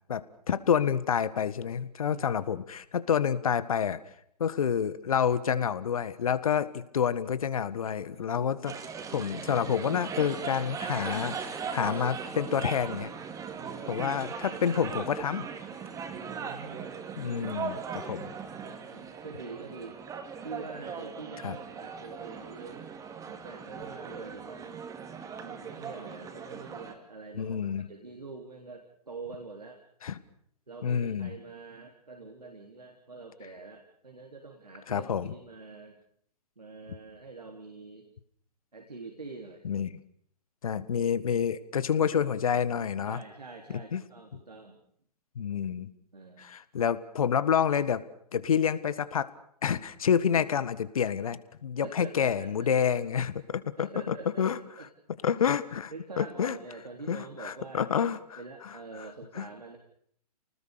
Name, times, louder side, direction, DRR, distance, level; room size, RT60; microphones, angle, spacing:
voice 1, 0.1-4.0 4.4-8.8 9.1-13.1 13.9-15.5 17.2-18.3 21.4-21.6 27.4-27.9 30.0-30.2 30.8-31.3 34.9-35.3 39.6-39.9 40.6-43.2 43.9-44.0 45.4-45.9 46.4-48.0 48.3-49.3 49.6-54.6 55.2-55.9 56.2-56.6 57.1-58.4 59.4-59.5, left 8 dB, 60° left, 15 dB, 1.7 m, -28 dB
voice 2, 2.1-2.4 8.1-8.5 13.6-14.0 16.1-17.2 18.2-20.0 20.4-22.9 23.2-24.9 25.4-29.8 30.7-36.0 36.6-38.1 38.7-39.7 43.0-44.8 46.1-46.5 51.8-52.7 53.8-54.4 54.8-54.9 55.9-57.9 58.4-59.8, right 3 dB, 80° right, 2 dB, 3.8 m, -45 dB
sound 1, 8.7-26.9, right 6 dB, 15° right, 2.6 m, -39 dB
29.0 x 20.0 x 6.8 m, 0.67 s
figure-of-eight pair, 115°, 20 cm